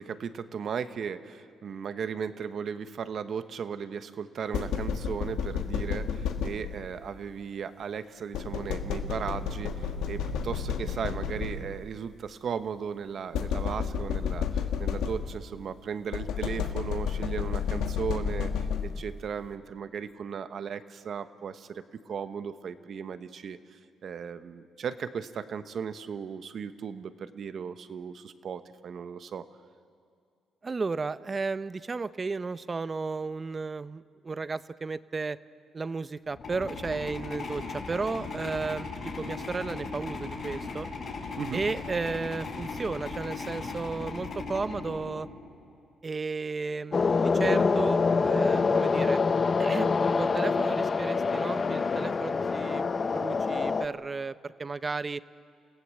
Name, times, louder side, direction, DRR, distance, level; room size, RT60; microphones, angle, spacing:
voice 1, 0.0-29.4 41.4-41.6, right 7 dB, 55° right, 11 dB, 1.1 m, -36 dB
sound 1, 4.5-7.0 8.3-11.9 13.3-15.5 16.1-19.2, left 7 dB, 90° left, 1.5 m, -31 dB
voice 2, 30.6-35.4 35.7-38.9 39.2-40.9 41.5-45.3 46.0-49.2 49.6-55.2, right 4 dB, 30° right, 15 dB, 0.6 m, -33 dB
sound 2, 36.3-45.7, left 4 dB, 55° left, 5.8 m, -38 dB
sound 3, 46.9-53.9, left 4 dB, 35° left, 0.8 m, -25 dB
28.5 x 16.5 x 7.6 m, 2.3 s
cardioid pair, 90°, 0 cm